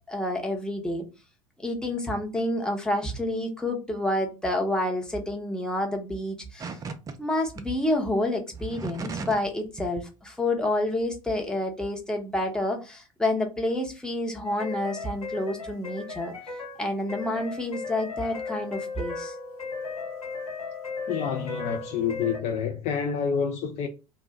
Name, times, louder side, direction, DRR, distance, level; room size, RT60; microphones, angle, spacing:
voice 1, 0.1-1.0 1.6-6.8 7.2-16.3 16.8-19.3, left 1 dB, 5° left, 0.8 m, -29 dB
sound 1, 6.6-7.1 7.6-7.7 8.5-9.5 9.8-10.1, right 4 dB, 20° right, 0.4 m, -36 dB
sound 2, 14.4-22.4, left 4 dB, 80° left, 0.8 m, -36 dB
voice 2, 21.1-23.9, left 6 dB, 40° left, 0.4 m, -28 dB
2.6 x 2.2 x 3.7 m
figure-of-eight pair, 75°, 18 cm